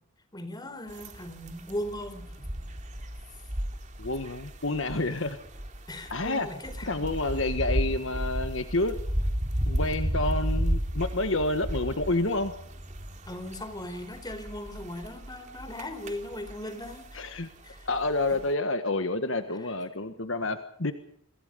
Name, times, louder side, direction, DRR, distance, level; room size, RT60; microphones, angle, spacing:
voice 1, 0.3-2.5 5.9-7.0 13.3-17.4 17.6-17.9 18.3-18.4 19.6-19.7, left 1 dB, 20° left, 9 dB, 4.2 m, -38 dB
sound 1, 0.9-18.5, equal, 35° right, 3.4 m, -34 dB
voice 2, 4.0-5.4 6.1-6.5 6.9-9.0 9.7-12.5 17.1-17.5 17.8-20.9, left 2 dB, 60° left, 8 dB, 1.6 m, -29 dB
28.0 x 23.0 x 5.3 m, 0.68 s
head